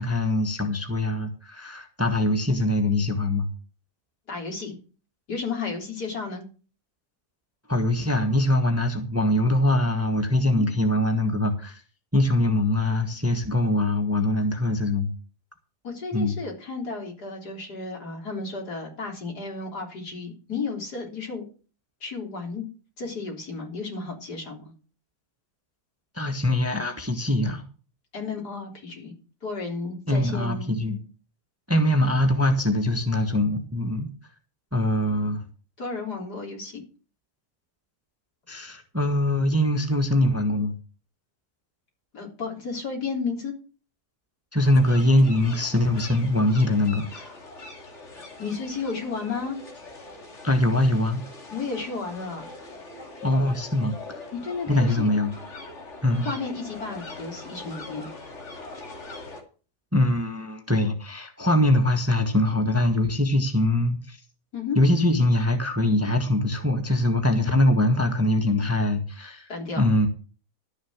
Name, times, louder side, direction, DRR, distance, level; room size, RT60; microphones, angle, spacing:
voice 1, 0.0-3.5 7.7-11.8 12.1-15.1 16.1-16.3 26.1-27.6 30.1-31.0 31.7-34.1 34.7-35.4 38.5-40.7 44.5-47.1 50.4-51.2 53.2-54.0 54.7-55.3 56.0-56.3 59.9-64.2 64.7-69.5 69.8-70.1, left 1 dB, 10° right, 1.3 m, -23 dB
voice 2, 4.3-4.7 5.3-6.4 10.5-10.7 15.8-21.4 22.0-22.7 23.0-24.7 28.1-29.1 29.4-30.7 35.8-36.8 42.1-43.5 47.1-47.3 48.4-49.6 51.5-52.5 54.3-55.1 56.2-58.1 64.5-64.8 69.5-69.9, left 4 dB, 75° left, 4.1 m, -33 dB
sound 1, 44.6-59.4, left 2 dB, 45° left, 2.8 m, -42 dB
12.5 x 6.6 x 7.2 m
omnidirectional pair, 1.7 m